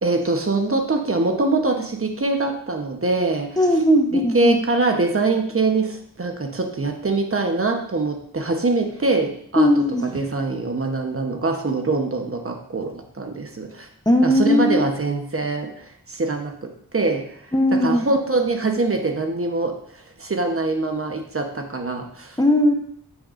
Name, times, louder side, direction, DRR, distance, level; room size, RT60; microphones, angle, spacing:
voice 1, 0.0-3.6 4.1-9.7 10.1-13.9 14.2-17.4 17.7-22.4, right 3 dB, 35° right, 4 dB, 1.0 m, -23 dB
voice 2, 3.6-4.6 9.6-10.0 14.1-14.8 17.5-18.1 22.4-22.7, left 1 dB, 10° left, 3 dB, 0.8 m, -18 dB
9.5 x 6.4 x 2.5 m, 0.64 s
wide cardioid pair, 80°, 37 cm